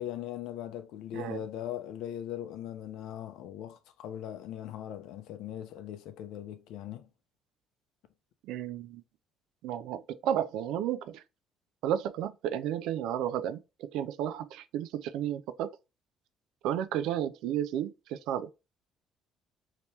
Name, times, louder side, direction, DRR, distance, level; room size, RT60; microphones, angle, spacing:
voice 1, 0.0-7.1, left 11 dB, 85° left, 0.5 m, -40 dB
voice 2, 8.4-9.0 9.6-11.2 11.8-15.7 16.6-18.5, right 10 dB, 85° right, 0.4 m, -32 dB
3.0 x 2.9 x 3.3 m
cardioid pair, 155°, 0 cm